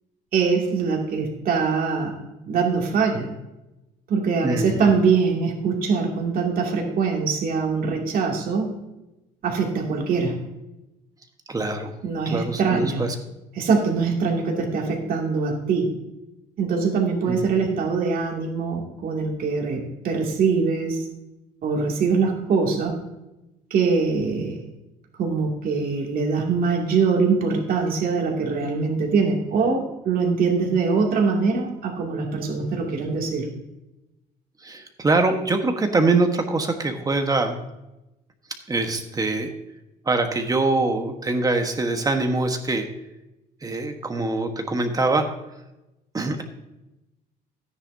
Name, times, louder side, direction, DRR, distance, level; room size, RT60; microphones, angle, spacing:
voice 1, 0.3-2.2 2.5-3.3 4.1-8.7 9.4-10.3 12.0-13.0 13.6-15.9 16.6-21.1 21.6-22.9 23.7-24.6 25.2-33.5, right 5 dB, 60° right, 0 dB, 2.6 m, -23 dB
voice 2, 4.4-4.8 11.5-12.0 12.2-13.1 17.3-17.4 34.6-37.6 38.7-39.5 40.0-42.9 43.6-45.3 46.1-46.4, right 3 dB, 20° right, 5 dB, 1.3 m, -23 dB
13.5 x 9.9 x 2.8 m, 0.95 s
cardioid pair, 110°, 17 cm